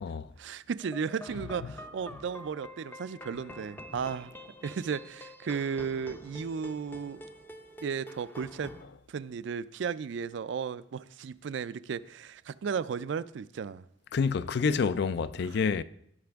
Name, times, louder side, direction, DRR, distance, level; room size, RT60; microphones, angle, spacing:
voice 1, 0.4-4.4 4.6-7.2 7.8-8.8 9.1-13.8, right 6 dB, 65° right, 0.4 m, -35 dB
sound 1, 0.8-8.8, equal, 10° left, 0.5 m, -47 dB
voice 2, 14.1-15.8, left 5 dB, 60° left, 0.4 m, -28 dB
16.5 x 5.8 x 3.5 m
head